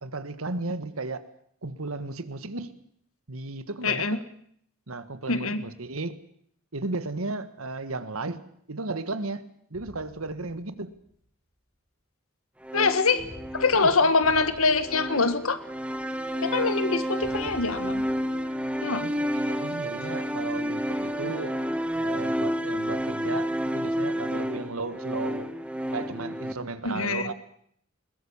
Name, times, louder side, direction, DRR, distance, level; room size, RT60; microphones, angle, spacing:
voice 1, 0.0-1.2 1.6-2.7 3.3-4.2 4.9-6.2 6.7-8.4 8.7-9.4 9.7-10.9 13.8-14.1 18.9-21.6 21.9-25.5 25.9-27.3, right 3 dB, 80° right, 12 dB, 1.6 m, -34 dB
voice 2, 3.8-4.2 5.3-5.6 12.7-13.2 13.5-15.6 16.4-18.0 18.8-19.0 26.8-27.3, left 4 dB, 75° left, 11 dB, 1.7 m, -24 dB
sound 1, 9.7-11.1 13.2-16.1 17.2-19.4, equal, 20° left, 7.8 m, -49 dB
sound 2, 12.6-26.5, equal, 5° right, 1.3 m, -30 dB
21.0 x 21.0 x 7.3 m, 0.66 s
head